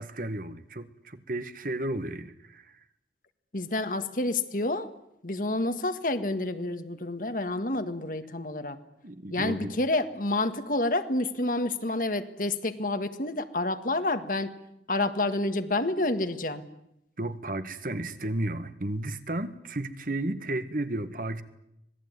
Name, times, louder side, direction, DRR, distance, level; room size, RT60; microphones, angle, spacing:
voice 1, 0.0-2.8 9.0-9.7 17.2-21.4, right 1 dB, 50° right, 11 dB, 1.6 m, -33 dB
voice 2, 3.5-4.9 5.2-8.8 9.3-14.5 14.9-16.6, left 2 dB, 50° left, 9 dB, 1.8 m, -29 dB
26.0 x 19.5 x 9.6 m, 0.81 s
head